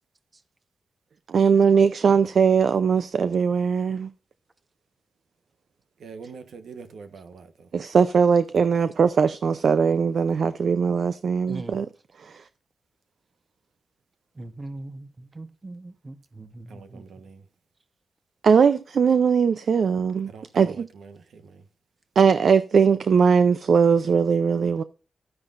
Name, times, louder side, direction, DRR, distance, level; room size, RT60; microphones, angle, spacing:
voice 1, 1.3-4.1 7.7-11.9 12.2-12.3 18.4-20.9 22.2-24.8, right 6 dB, 60° right, 0.6 m, -20 dB
voice 2, 6.0-7.7 16.7-17.4 20.3-21.6, right 5 dB, 85° right, 1.2 m, -44 dB
voice 3, 11.4-11.8 14.4-17.1, right 2 dB, 25° right, 1.1 m, -40 dB
12.5 x 9.7 x 2.6 m
wide cardioid pair, 125°, 0 cm